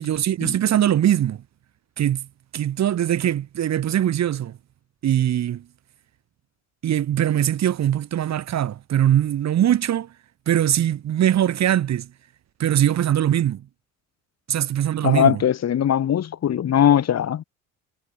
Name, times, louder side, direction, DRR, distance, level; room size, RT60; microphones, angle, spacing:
voice 1, 0.0-1.4 2.0-2.3 2.5-4.6 5.0-5.6 6.8-10.1 10.5-12.1 12.6-13.6 14.5-15.4, right 11 dB, 45° right, 5.8 m, -21 dB
voice 2, 15.0-17.4, left 10 dB, 45° left, 7.0 m, -20 dB
figure-of-eight pair, 55°, 37 cm